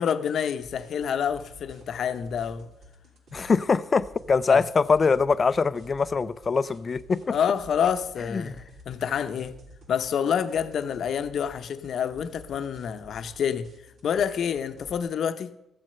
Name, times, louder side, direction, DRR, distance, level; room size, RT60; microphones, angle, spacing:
voice 1, 0.0-2.7 4.5-4.6 7.3-9.5 9.9-13.7 14.0-15.5, left 8 dB, 65° left, 0.8 m, -28 dB
sound 1, 0.6-15.0, equal, 70° right, 3.4 m, -51 dB
voice 2, 3.3-7.4 8.3-8.5, left 5 dB, 35° left, 0.4 m, -23 dB
13.5 x 7.6 x 6.6 m
cardioid pair, 90°, 0 cm